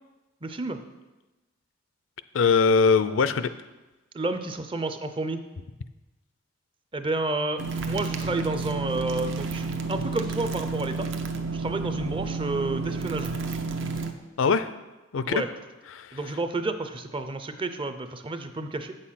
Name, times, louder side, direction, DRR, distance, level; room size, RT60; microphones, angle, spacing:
voice 1, 0.4-0.8 4.1-5.4 6.9-9.6 9.9-11.1 11.5-13.3 15.2-15.5 16.1-19.0, right 2 dB, 25° right, 9 dB, 0.5 m, -30 dB
voice 2, 2.3-3.5 14.4-14.7 15.1-15.4 15.9-16.2, left 5 dB, 75° left, 13 dB, 0.5 m, -21 dB
sound 1, 7.6-14.1, right 4 dB, 65° right, 0.8 m, -31 dB
8.4 x 6.6 x 5.7 m, 1.1 s
head